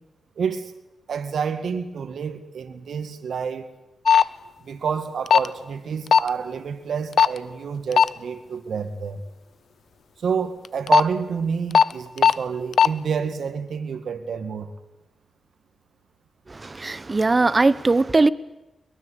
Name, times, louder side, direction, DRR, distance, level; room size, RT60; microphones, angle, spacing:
voice 1, 0.4-0.7 1.1-3.7 4.6-9.2 10.2-14.7, right 6 dB, 80° right, 2.2 m, -28 dB
sound 1, 4.1-4.2 5.3-5.5 6.1-6.3 7.2-7.4 7.9-8.1 10.6-11.0 11.7-11.9 12.2-12.3 12.7-12.9, left 7 dB, 75° left, 0.9 m, -14 dB
voice 2, 16.5-18.3, right 3 dB, 35° right, 1.0 m, -20 dB
23.0 x 22.0 x 8.7 m
cardioid pair, 70°, 0 cm